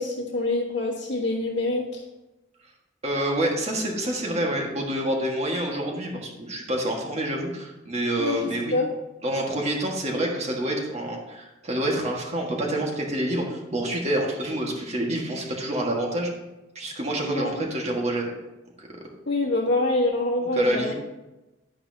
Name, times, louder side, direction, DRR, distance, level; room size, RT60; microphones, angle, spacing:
voice 1, 0.0-2.0 8.2-8.4 8.7-8.9 17.2-17.6 19.3-20.9, left 2 dB, 60° left, -5 dB, 1.5 m, -25 dB
voice 2, 3.0-8.8 9.2-16.3 16.8-18.3 18.8-18.9 20.5-20.9, right 1 dB, 35° right, 0 dB, 1.7 m, -27 dB
11.0 x 9.7 x 2.9 m, 1.0 s
head